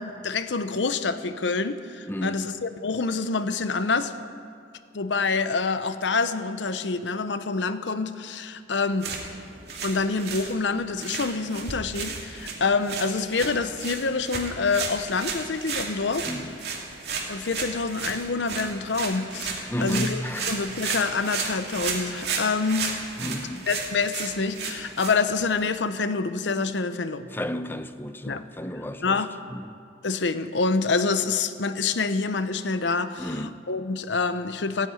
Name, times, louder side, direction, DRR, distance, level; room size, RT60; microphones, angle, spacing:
voice 1, 0.0-4.1 4.9-9.1 9.8-16.3 17.3-20.2 20.5-22.9 23.7-27.2 28.3-28.5 29.0-29.3 30.0-33.3 33.7-34.9, left 4 dB, 80° left, 0.7 m, -26 dB
voice 2, 2.1-2.4 16.3-16.6 19.7-20.5 23.2-23.7 27.2-29.2 29.5-29.8 33.2-33.6, left 1 dB, 10° left, 0.6 m, -32 dB
sound 1, 8.9-25.7, right 5 dB, 60° right, 2.4 m, -34 dB
15.5 x 9.6 x 9.4 m
head